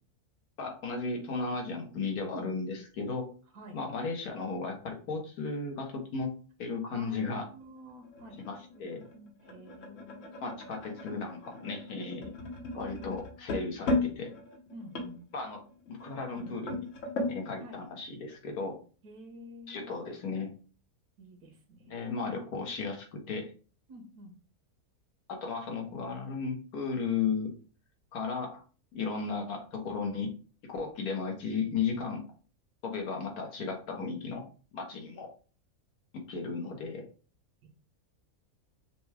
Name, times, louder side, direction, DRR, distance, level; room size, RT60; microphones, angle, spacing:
voice 1, 0.6-3.3 3.7-6.3 6.6-7.4 8.4-9.0 10.4-12.3 12.7-14.3 15.3-15.6 15.9-16.9 17.3-18.8 19.7-20.5 21.9-23.5 25.3-27.5 28.1-28.6 28.9-30.3 30.7-32.2 32.8-34.4 34.7-35.3 36.3-37.0, left 4 dB, 80° left, 2 dB, 1.5 m, -35 dB
voice 2, 6.9-8.5 8.7-10.7 11.9-12.3 14.7-15.3 17.6-17.8 19.0-20.1 21.2-22.1 23.9-24.3 37.6-37.7, right 1 dB, 90° right, 3 dB, 1.4 m, -49 dB
sound 1, 7.6-17.4, left 2 dB, 60° left, 1.3 m, -37 dB
5.9 x 2.3 x 3.3 m, 0.38 s
omnidirectional pair, 1.6 m